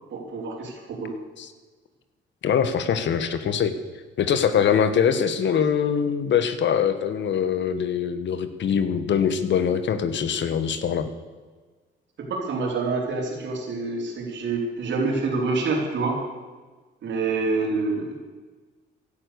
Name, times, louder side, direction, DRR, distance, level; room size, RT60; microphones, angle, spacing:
voice 1, 0.1-1.1 12.2-16.2 17.0-18.2, right 3 dB, 65° right, 1 dB, 4.3 m, -27 dB
voice 2, 2.4-3.7 4.2-11.1, left 7 dB, 65° left, 10 dB, 1.5 m, -23 dB
16.5 x 11.5 x 6.9 m, 1.4 s
cardioid pair, 90°, 20 cm